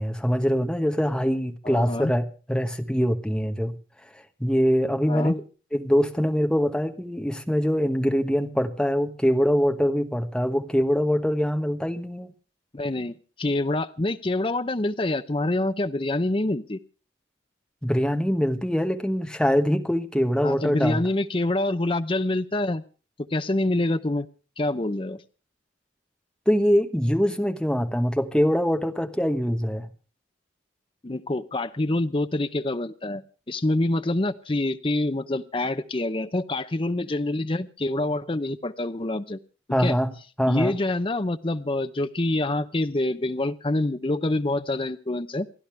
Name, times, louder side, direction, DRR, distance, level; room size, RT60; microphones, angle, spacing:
voice 1, 0.0-3.7 4.4-5.4 5.7-12.3 17.8-21.0 26.5-29.9 39.7-40.1 40.4-40.8, equal, 5° left, 6 dB, 1.2 m, -23 dB
voice 2, 1.6-2.1 5.1-5.4 12.7-16.8 20.4-22.8 23.3-24.3 24.6-25.2 31.0-33.2 33.5-39.4 39.8-39.9 40.5-45.5, left 2 dB, 30° left, 10 dB, 0.7 m, -26 dB
28.0 x 11.5 x 3.3 m, 0.36 s
head